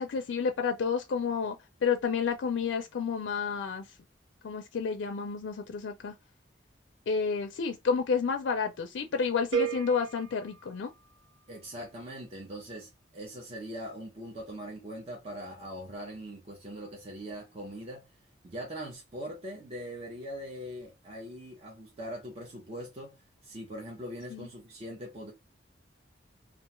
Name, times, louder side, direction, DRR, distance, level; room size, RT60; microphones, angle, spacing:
voice 1, 0.0-1.6 1.8-3.9 4.4-6.1 7.1-10.9 24.3-24.5, left 5 dB, 80° left, 0.4 m, -30 dB
sound 1, 9.5-11.6, right 9 dB, 80° right, 0.6 m, -35 dB
voice 2, 11.5-18.1 18.4-25.3, equal, 35° right, 0.6 m, -41 dB
2.5 x 2.2 x 2.9 m
head